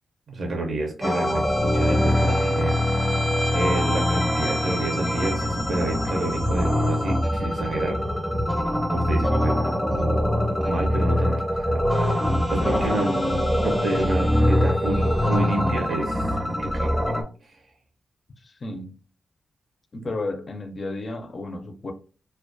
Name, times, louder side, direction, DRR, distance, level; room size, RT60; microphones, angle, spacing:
voice 1, 0.3-3.3 3.5-8.0 8.9-9.6 9.9-10.2 10.6-13.1 13.6-16.9 17.4-17.5, right 2 dB, 60° right, 0.5 m, -29 dB
sound 1, 1.0-17.2, left 1 dB, 5° left, 0.6 m, -23 dB
voice 2, 12.6-13.5 18.4-18.9 19.9-21.9, left 2 dB, 45° left, 0.4 m, -33 dB
2.2 x 2.2 x 2.5 m
cardioid pair, 75°, 0 cm